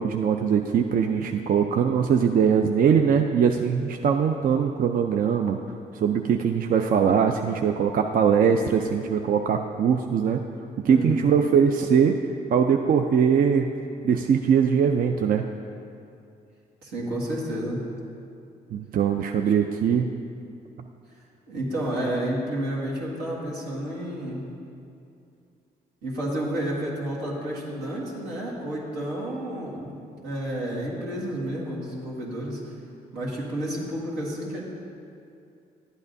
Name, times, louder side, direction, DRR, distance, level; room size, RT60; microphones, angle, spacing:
voice 1, 0.0-5.6 5.9-10.4 10.8-12.2 12.5-13.7 14.0-15.5 18.7-20.1, right 7 dB, 55° right, 4 dB, 0.4 m, -21 dB
voice 2, 10.9-11.2 16.8-17.8 21.5-24.4 26.0-30.0 30.2-32.6 33.1-34.6, right 1 dB, 90° right, -6 dB, 1.8 m, -30 dB
11.0 x 8.4 x 2.7 m, 2.5 s
supercardioid pair, 60°, 17 cm